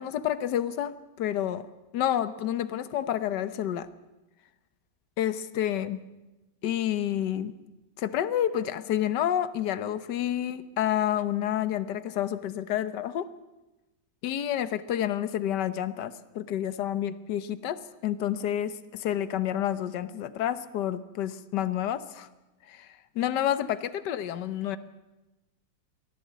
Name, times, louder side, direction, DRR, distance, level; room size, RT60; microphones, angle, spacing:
voice 1, 0.0-3.9 5.2-6.0 6.6-7.5 8.0-13.3 14.2-22.3 22.7-22.9 23.1-24.8, left 11 dB, 70° left, 13 dB, 1.6 m, -29 dB
23.5 x 16.0 x 8.3 m, 1.0 s
omnidirectional pair, 1.9 m